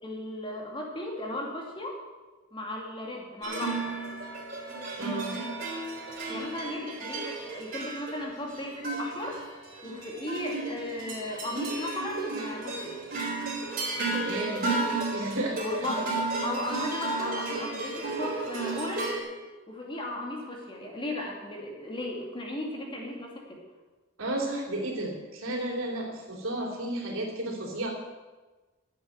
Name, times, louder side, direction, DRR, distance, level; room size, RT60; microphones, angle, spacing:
voice 1, 0.0-2.0 2.5-3.9 6.3-9.4 9.8-13.0 15.6-16.1 16.4-19.1 19.7-23.6, left 1 dB, 25° left, -1 dB, 2.5 m, -36 dB
sound 1, 3.4-19.2, right 3 dB, 45° right, 4.0 m, -33 dB
voice 2, 5.0-5.3 14.2-14.7 15.1-15.9 24.2-27.9, right 1 dB, 90° right, 0 dB, 3.3 m, -33 dB
12.0 x 8.2 x 8.0 m, 1.2 s
head